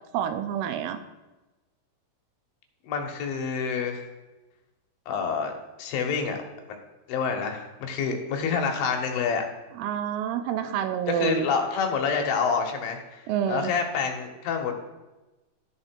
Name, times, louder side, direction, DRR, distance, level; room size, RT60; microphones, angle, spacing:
voice 1, 0.1-1.0 9.8-11.5 13.3-13.7, right 9 dB, 90° right, 9 dB, 2.6 m, -28 dB
voice 2, 2.8-4.0 5.1-5.5 5.8-6.4 6.7-6.8 7.1-9.4 11.1-14.9, left 6 dB, 75° left, 3 dB, 2.7 m, -27 dB
13.0 x 4.3 x 4.4 m, 1.1 s
omnidirectional pair, 4.5 m